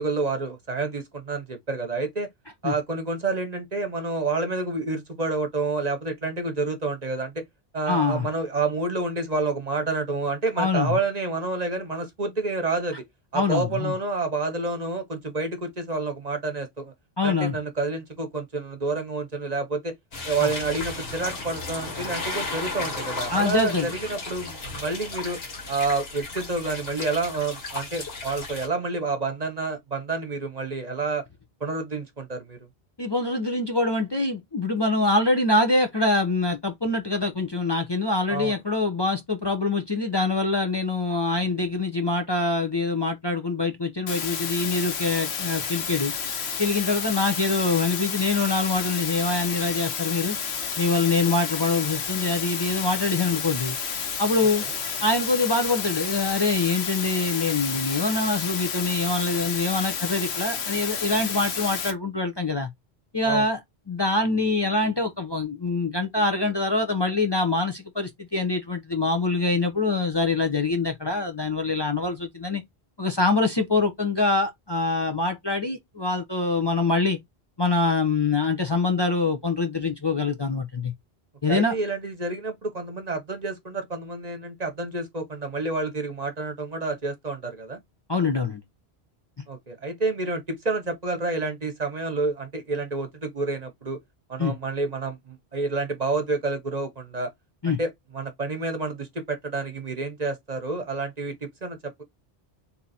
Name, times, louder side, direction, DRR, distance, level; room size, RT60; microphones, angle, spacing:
voice 1, 0.0-2.3 2.6-7.4 7.7-13.0 13.3-16.9 17.2-19.9 20.2-25.4 25.7-31.2 31.6-32.6 38.3-38.5 63.2-63.5 81.5-87.8 89.5-94.0 94.3-97.3 97.7-102.0, right 3 dB, 40° right, 0.9 m, -29 dB
voice 2, 7.9-8.3 10.6-11.0 13.3-13.9 17.2-17.5 20.4-20.5 23.3-23.9 33.0-46.1 46.6-50.4 50.8-53.8 54.2-54.6 55.0-62.7 63.1-63.6 63.9-72.6 73.0-77.2 77.6-80.9 81.4-81.7 88.1-88.6 94.4-94.5 97.6-97.8, left 3 dB, 30° left, 0.7 m, -24 dB
sound 1, 20.1-28.7, left 3 dB, 70° left, 1.6 m, -34 dB
sound 2, 44.1-61.9, left 6 dB, 90° left, 1.1 m, -31 dB
3.8 x 2.8 x 4.1 m
omnidirectional pair, 1.1 m